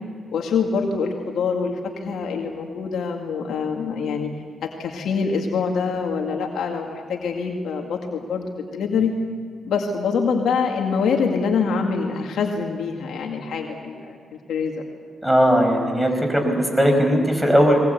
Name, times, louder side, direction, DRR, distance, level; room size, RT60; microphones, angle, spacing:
voice 1, 0.3-4.3 4.6-8.5 8.7-9.1 9.6-14.2 14.5-14.8, left 5 dB, 85° left, 2 dB, 2.1 m, -25 dB
voice 2, 15.2-17.8, equal, 5° right, 4 dB, 5.4 m, -18 dB
20.5 x 20.5 x 8.1 m, 2.1 s
cardioid pair, 75°, 0 cm